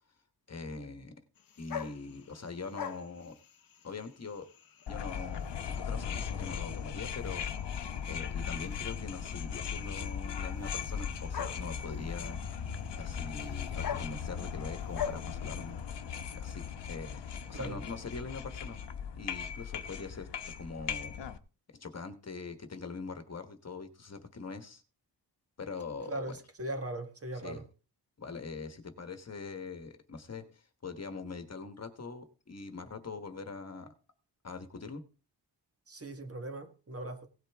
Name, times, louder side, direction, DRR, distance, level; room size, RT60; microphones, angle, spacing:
voice 1, 0.5-1.1 1.6-3.4 3.8-4.5 4.9-7.5 8.1-12.4 12.9-15.8 16.4-18.8 19.2-21.2 21.7-24.8 25.6-26.3 27.4-27.6 28.2-33.9 34.4-35.0, left 4 dB, 35° left, 1.3 m, -43 dB
sound 1, 1.4-16.5, left 8 dB, 50° left, 1.0 m, -46 dB
sound 2, 4.9-21.4, left 7 dB, 75° left, 1.1 m, -38 dB
voice 2, 26.1-27.7 35.9-37.3, right 1 dB, 35° right, 1.4 m, -39 dB
17.0 x 8.9 x 3.5 m
wide cardioid pair, 155°, 43 cm